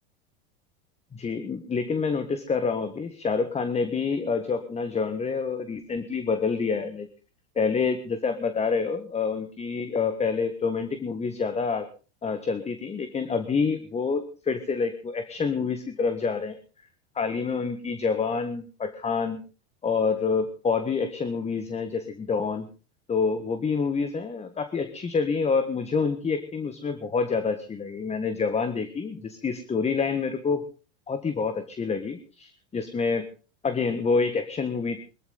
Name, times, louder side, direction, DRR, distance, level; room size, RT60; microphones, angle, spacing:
voice 1, 1.1-7.1 7.5-11.9 12.2-16.6 17.1-19.4 19.8-22.7 23.1-30.6 31.1-33.2 33.6-35.0, left 5 dB, 20° left, 10 dB, 1.5 m, -27 dB
22.5 x 13.5 x 4.0 m, 0.36 s
hypercardioid pair, 105°, 33 cm